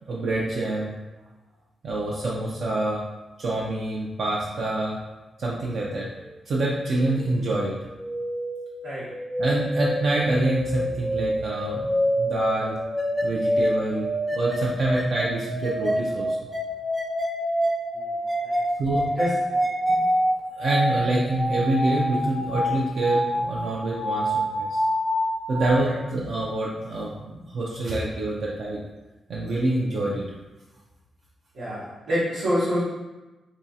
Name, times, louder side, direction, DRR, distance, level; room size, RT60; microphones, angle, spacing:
voice 1, 0.1-0.9 1.8-3.0 3.4-5.0 5.4-6.1 6.5-7.7 9.4-12.8 13.2-16.4 18.8-19.1 19.9-20.0 20.5-24.8 25.5-28.8 29.3-30.2, right 2 dB, 60° right, -4 dB, 0.5 m, -26 dB
sound 1, 6.5-25.7, equal, 10° right, 0.9 m, -27 dB
voice 2, 17.9-18.6 19.2-20.0 25.8-26.0 31.5-32.8, equal, 90° right, -12 dB, 1.3 m, -28 dB
3.5 x 3.0 x 2.7 m, 1.1 s
wide cardioid pair, 150°, 0 cm